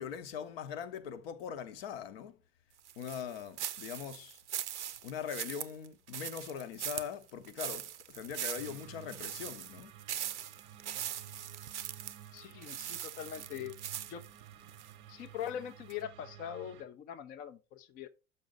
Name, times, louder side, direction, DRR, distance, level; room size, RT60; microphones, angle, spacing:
voice 1, 0.0-2.4 3.0-4.4 5.0-9.9, left 8 dB, 55° left, 0.8 m, -41 dB
sound 1, 2.9-14.9 15.4-15.5 15.9-16.0, right 11 dB, 70° right, 0.6 m, -41 dB
sound 2, 8.6-16.8, right 10 dB, 35° right, 0.7 m, -53 dB
voice 2, 12.3-13.7 14.1-14.2 15.1-18.1, left 10 dB, 25° left, 0.5 m, -42 dB
6.6 x 5.4 x 3.8 m
figure-of-eight pair, 80°, 36 cm